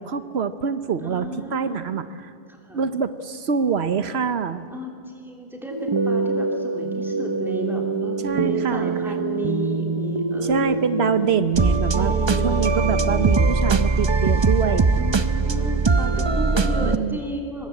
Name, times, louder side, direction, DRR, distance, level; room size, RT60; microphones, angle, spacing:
voice 1, 0.0-2.3 2.7-4.6 8.2-9.0 10.4-12.1 12.4-14.9 16.8-17.2, right 6 dB, 70° right, 11 dB, 1.1 m, -25 dB
voice 2, 1.0-1.8 2.5-2.8 4.7-10.9 12.0-13.5 14.9-17.7, equal, ahead, 0 dB, 3.1 m, -33 dB
sound 1, 5.7-17.0, right 4 dB, 30° right, 0.7 m, -22 dB
24.0 x 20.0 x 8.5 m, 2.4 s
omnidirectional pair, 1.1 m